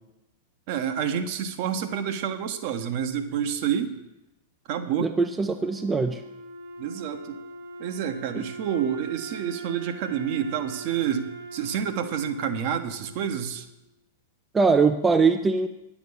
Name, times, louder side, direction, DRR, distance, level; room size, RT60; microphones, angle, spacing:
voice 1, 0.7-4.0 4.7-5.1 6.8-7.4 7.8-13.7, right 8 dB, 45° right, 8 dB, 1.0 m, -28 dB
Wind instrument woodwind instrument, 4.8-13.9, right 2 dB, 65° right, 1.4 m, -42 dB
voice 2, 5.0-6.2 8.3-8.4 14.5-15.7, right 4 dB, 15° right, 7 dB, 0.5 m, -22 dB
10.5 x 7.3 x 6.9 m, 0.93 s
figure-of-eight pair, 95°, 0 cm